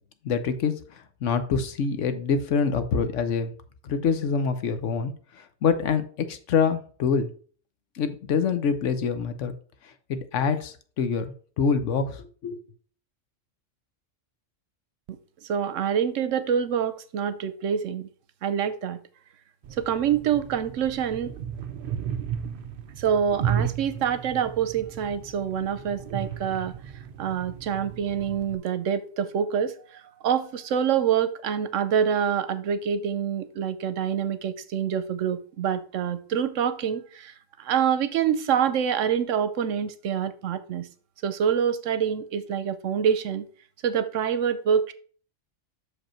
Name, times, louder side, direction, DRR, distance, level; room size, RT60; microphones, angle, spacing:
voice 1, 0.2-0.7 1.2-3.5 3.8-5.1 5.4-7.3 8.0-9.5 10.1-12.6, left 5 dB, 75° left, 1.1 m, -25 dB
voice 2, 15.5-18.1 18.4-19.0 19.8-21.3 23.0-26.7 27.2-37.3 37.6-40.9 41.2-43.5 43.8-44.9, right 8 dB, 80° right, 1.1 m, -26 dB
sound 1, 19.6-28.6, right 8 dB, 55° right, 0.7 m, -34 dB
6.4 x 5.2 x 4.4 m
omnidirectional pair, 1.3 m